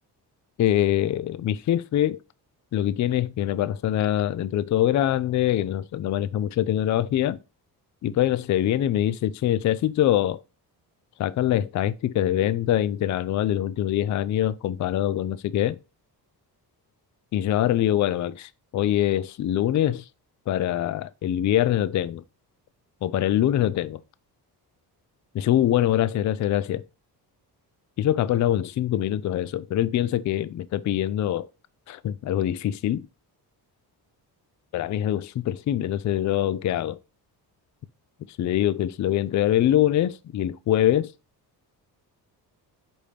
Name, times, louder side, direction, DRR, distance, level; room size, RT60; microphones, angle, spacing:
voice 1, 0.6-2.2 2.7-7.4 8.0-10.4 11.2-15.8 17.3-20.0 20.5-22.2 23.0-24.0 25.3-26.8 28.0-31.5 31.9-33.1 34.7-37.0 38.4-41.1, left 12 dB, 45° left, 0.4 m, -24 dB
5.1 x 4.3 x 5.0 m
cardioid pair, 145°, 40 cm